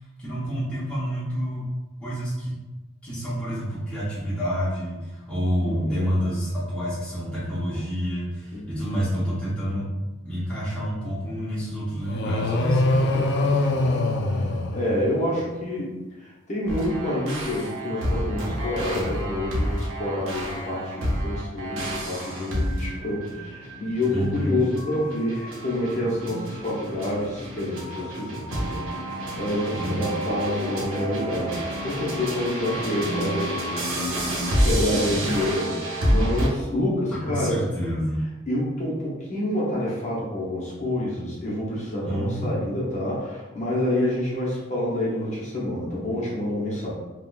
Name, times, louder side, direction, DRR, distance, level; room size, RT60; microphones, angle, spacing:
voice 1, 0.2-1.7 2.0-2.6 3.0-9.9 10.2-13.3 24.1-24.6 29.8-30.1 37.2-38.2 42.0-42.5, equal, 5° left, -10 dB, 0.7 m, -28 dB
voice 2, 5.6-6.0 8.5-8.6 13.1-14.0 14.2-15.9 16.2-33.7 34.6-37.6 38.5-46.9, left 1 dB, 35° left, -6 dB, 0.8 m, -28 dB
sound 1, 12.1-15.4, left 2 dB, 60° left, 0.4 m, -23 dB
sound 2, 16.7-36.5, equal, 85° right, 0.7 m, -29 dB
3.5 x 2.2 x 2.3 m, 1.1 s
head